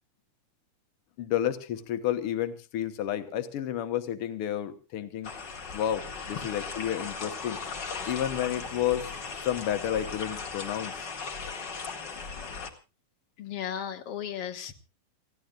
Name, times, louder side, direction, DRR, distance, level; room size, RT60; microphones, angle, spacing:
voice 1, 1.2-5.3 5.7-7.6 8.1-9.1 9.4-11.0, left 10 dB, 85° left, 9 dB, 1.2 m, -31 dB
sound 1, 5.2-12.7, left 4 dB, 40° left, 1.9 m, -38 dB
voice 2, 13.4-14.7, left 9 dB, 55° left, 5 dB, 1.8 m, -35 dB
28.5 x 16.0 x 2.4 m, 0.32 s
omnidirectional pair, 4.3 m